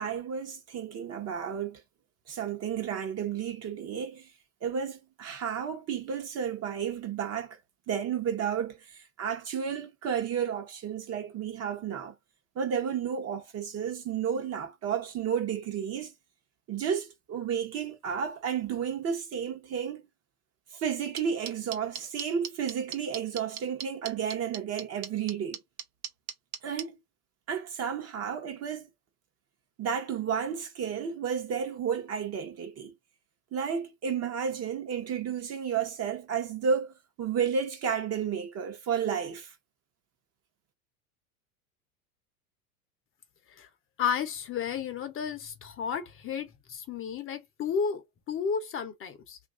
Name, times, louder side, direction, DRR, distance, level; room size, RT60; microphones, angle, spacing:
voice 1, 0.0-1.8 2.3-4.2 4.6-7.6 7.9-8.8 9.2-12.1 12.6-16.1 16.7-20.0 20.8-25.6 26.6-27.0 27.5-28.9 29.8-32.9 33.5-36.9 37.2-39.5, right 7 dB, 35° right, 0.9 m, -32 dB
sound 1, 21.2-26.8, right 9 dB, 60° right, 0.8 m, -36 dB
voice 2, 44.0-49.4, left 6 dB, 30° left, 0.7 m, -32 dB
3.0 x 2.6 x 2.4 m
hypercardioid pair, 95°, 44 cm